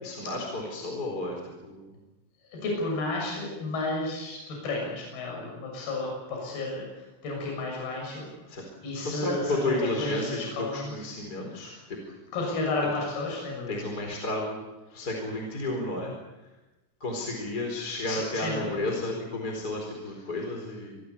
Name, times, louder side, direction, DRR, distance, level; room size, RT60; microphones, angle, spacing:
voice 1, 0.0-2.0 8.5-8.6 9.0-12.2 13.7-14.6 14.9-16.1 17.0-21.0, left 2 dB, 20° left, 1 dB, 4.2 m, -32 dB
voice 2, 2.5-6.8 7.2-8.3 8.8-11.0 11.6-11.8 12.3-13.8 18.1-18.8, left 2 dB, 50° left, -1 dB, 8.6 m, -32 dB
27.5 x 22.0 x 7.0 m, 1.1 s
omnidirectional pair, 5.9 m